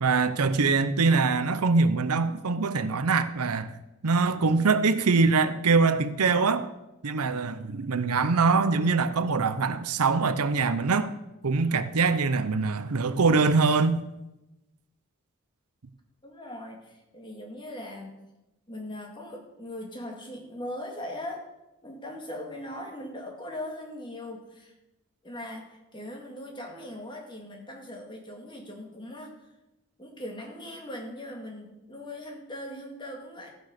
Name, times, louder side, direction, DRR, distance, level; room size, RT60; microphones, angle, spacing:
voice 1, 0.0-3.7 4.0-6.7 7.0-11.1 11.4-14.0, right 4 dB, 85° right, 0.7 m, -23 dB
voice 2, 16.2-18.2 18.7-21.5 21.8-24.7 25.2-29.4 30.0-33.5, left 1 dB, 20° left, 2.1 m, -40 dB
14.5 x 6.3 x 6.5 m
head